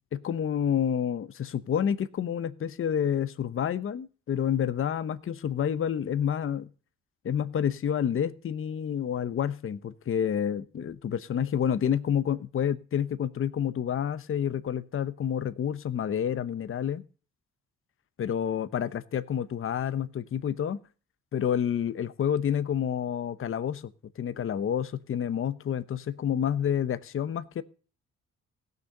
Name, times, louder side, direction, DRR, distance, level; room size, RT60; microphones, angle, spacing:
voice 1, 0.1-6.7 7.2-17.0 18.2-20.8 21.3-23.8 24.2-27.6, left 9 dB, 45° left, 14 dB, 0.8 m, -29 dB
16.5 x 6.7 x 6.6 m, 0.38 s
cardioid pair, 90°, 30 cm